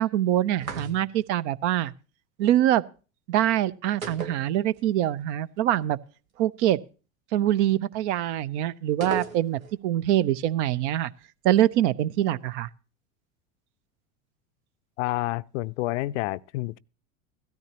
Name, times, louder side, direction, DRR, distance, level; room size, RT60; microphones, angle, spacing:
voice 1, 0.0-1.9 2.4-2.8 3.3-6.0 6.4-6.8 7.3-11.1 11.4-12.7, right 12 dB, 55° right, 0.7 m, -24 dB
sound 1, 0.6-1.3 4.0-5.1 5.3-5.4 9.0-9.8, right 4 dB, 85° right, 1.5 m, -36 dB
voice 2, 15.0-16.8, left 18 dB, 60° left, 0.5 m, -29 dB
16.5 x 13.5 x 2.9 m
hypercardioid pair, 90°, 41 cm